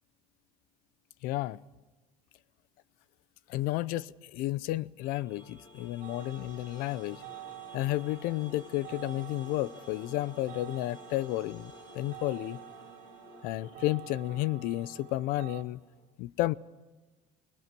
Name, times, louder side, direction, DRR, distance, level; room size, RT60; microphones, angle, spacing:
voice 1, 1.2-1.6 3.5-7.2 7.7-12.6 13.4-15.8 16.2-16.5, left 16 dB, 65° left, 0.7 m, -32 dB
sound 1, 5.0-16.0, left 1 dB, 30° left, 5.8 m, -53 dB
sound 2, 6.0-15.6, right 14 dB, 60° right, 2.6 m, -49 dB
25.5 x 19.5 x 6.1 m
cardioid pair, 145°, 15 cm